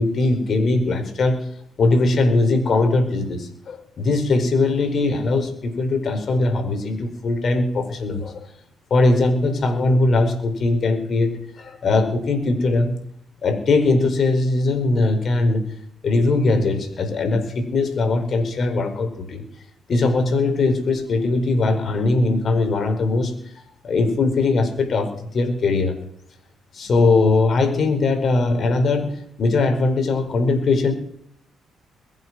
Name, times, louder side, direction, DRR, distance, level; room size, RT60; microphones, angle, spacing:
voice 1, 0.0-1.5 1.8-8.5 8.9-13.0 13.4-15.7 16.0-19.4 19.9-23.3 23.8-26.0 26.7-30.9, left 3 dB, 55° left, 6 dB, 4.8 m, -20 dB
22.0 x 8.1 x 6.3 m, 0.67 s
supercardioid pair, 70°, 0 cm